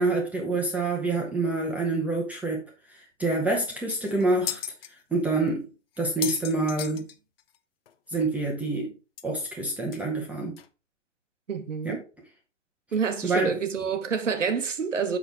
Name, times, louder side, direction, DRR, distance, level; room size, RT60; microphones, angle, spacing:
voice 1, 0.0-4.6 5.1-5.7 6.0-7.1 8.1-8.9 9.2-10.6 11.8-12.0 13.2-13.5, right 2 dB, 5° right, 0.8 m, -27 dB
sound 1, 3.5-3.6 3.9-4.9 5.5-5.6 6.0-7.6 7.9-8.0 8.2-8.3 9.2-9.3 9.9-10.0 10.6-10.7, left 10 dB, 50° left, 0.7 m, -35 dB
voice 2, 11.5-12.0 12.9-15.2, right 6 dB, 90° right, 1.2 m, -28 dB
6.4 x 5.9 x 3.4 m
hypercardioid pair, 140°, 36 cm